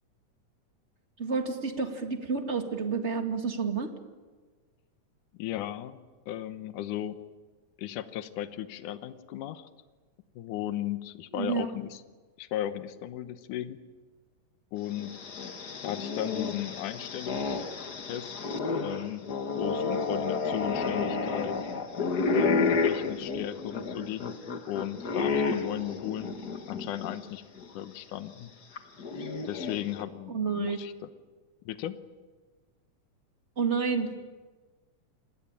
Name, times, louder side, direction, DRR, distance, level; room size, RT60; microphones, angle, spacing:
voice 1, 1.2-3.9 11.3-11.7 30.3-30.8 33.6-34.1, right 5 dB, 25° right, 5 dB, 1.9 m, -29 dB
voice 2, 5.3-6.0 6.3-7.2 7.8-9.7 10.4-12.0 12.4-13.8 14.7-15.2 15.8-17.7 18.1-18.4 18.8-19.3 19.6-21.6 22.3-24.3 24.7-26.3 26.7-27.4 27.7-28.5 29.4-31.1 31.7-32.0, left 12 dB, 80° left, 11 dB, 2.5 m, -36 dB
sound 1, 14.9-27.2 27.6-27.7 28.8-30.0, left 4 dB, 40° left, 1.6 m, -31 dB
28.0 x 21.0 x 9.0 m, 1.4 s
omnidirectional pair, 3.7 m